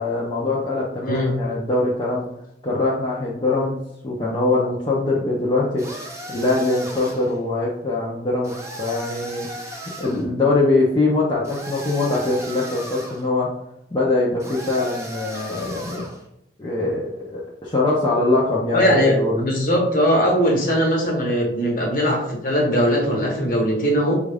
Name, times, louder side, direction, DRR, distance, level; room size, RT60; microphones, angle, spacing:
voice 1, 0.0-2.2 2.6-5.8 6.3-9.5 10.0-13.5 13.9-16.0 16.6-19.4, left 2 dB, 25° left, -5 dB, 0.6 m, -22 dB
voice 2, 1.0-1.3 18.7-24.1, equal, 50° left, -1 dB, 1.0 m, -20 dB
sound 1, 5.8-7.4 8.4-10.2 11.4-13.3 14.4-16.2, right 1 dB, 15° right, 0.5 m, -35 dB
5.0 x 2.4 x 3.4 m, 0.81 s
head